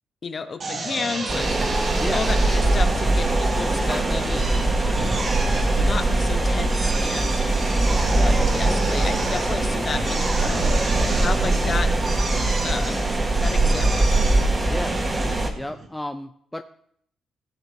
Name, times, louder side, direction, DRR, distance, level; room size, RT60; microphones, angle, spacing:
voice 1, 0.2-1.5 2.1-4.8 5.8-7.5 8.1-10.8 11.1-12.3 12.6-13.1 13.4-14.3, left 4 dB, 40° left, 9 dB, 1.1 m, -32 dB
Drill, 0.6-15.9, right 3 dB, 45° right, 1.9 m, -32 dB
sound 1, 1.3-15.5, right 2 dB, 25° right, 1.7 m, -22 dB
voice 2, 14.7-15.0 15.5-16.6, left 1 dB, 10° left, 8 dB, 0.5 m, -32 dB
15.5 x 6.6 x 3.6 m, 0.68 s
cardioid pair, 90°, 0 cm